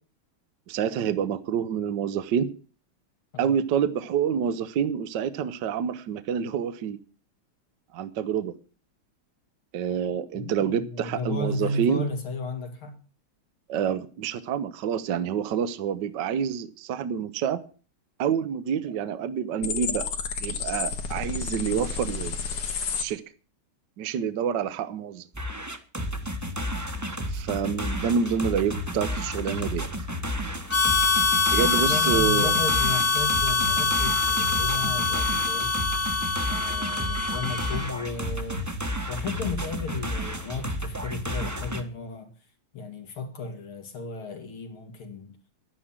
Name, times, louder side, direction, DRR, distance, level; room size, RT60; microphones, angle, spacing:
voice 1, 0.7-2.5 3.4-7.0 7.9-8.5 9.7-12.0 13.7-17.6 18.2-20.1 20.4-22.6 23.0-23.2 24.0-25.3 27.3-29.9 31.5-32.6, right 8 dB, 65° right, 1.4 m, -27 dB
voice 2, 10.3-12.9 31.6-35.8 36.5-38.7 39.1-42.3 42.7-45.3, left 3 dB, 80° left, 3.0 m, -34 dB
sound 1, 19.6-23.0, left 6 dB, 60° left, 2.0 m, -31 dB
sound 2, 25.3-41.8, equal, 10° right, 1.0 m, -32 dB
Harmonica, 30.7-38.0, left 4 dB, 40° left, 1.3 m, -24 dB
11.5 x 9.9 x 7.3 m
omnidirectional pair, 2.3 m